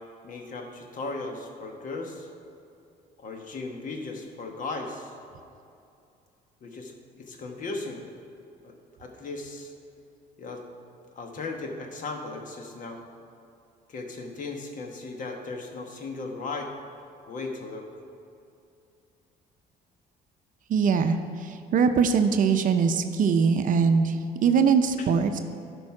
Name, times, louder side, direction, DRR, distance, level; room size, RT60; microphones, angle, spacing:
voice 1, 0.2-2.3 3.2-5.1 6.6-8.1 8.6-8.7 9.0-9.7 10.4-10.6 11.1-13.0 13.9-16.7 17.3-17.9 25.0-25.1, left 3 dB, 50° left, 3 dB, 1.3 m, -36 dB
voice 2, 20.7-25.4, right 6 dB, 50° right, 7 dB, 0.6 m, -22 dB
12.0 x 5.4 x 4.8 m, 2.6 s
cardioid pair, 110°, 17 cm